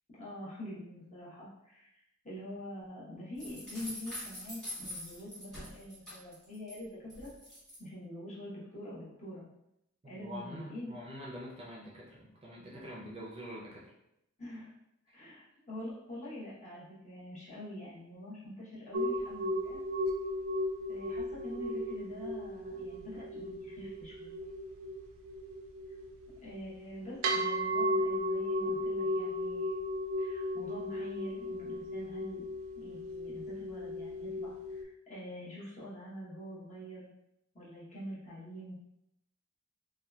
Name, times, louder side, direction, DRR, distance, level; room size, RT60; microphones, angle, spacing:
voice 1, 0.2-1.9 2.2-7.3 7.8-9.5 10.1-10.9 14.4-14.7 15.1-19.8 20.9-24.5 26.4-29.8 30.2-32.4 32.8-37.1 37.5-38.7, equal, 35° left, -8 dB, 0.9 m, -45 dB
sound 1, 3.4-6.8 7.1-7.8, equal, 5° left, 1.3 m, -44 dB
voice 2, 10.0-13.9, equal, 30° right, -5 dB, 0.5 m, -45 dB
sound 2, 18.9-34.8, equal, 90° right, 0.4 m, -35 dB
2.7 x 2.3 x 2.2 m, 0.83 s
head